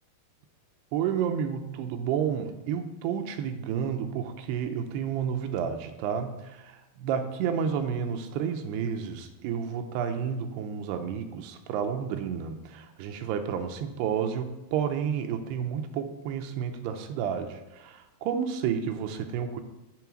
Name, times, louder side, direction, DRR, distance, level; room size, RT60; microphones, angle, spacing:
voice 1, 0.9-19.6, right 7 dB, 90° right, 6 dB, 2.8 m, -31 dB
10.5 x 3.8 x 6.0 m, 1.0 s
omnidirectional pair, 4.7 m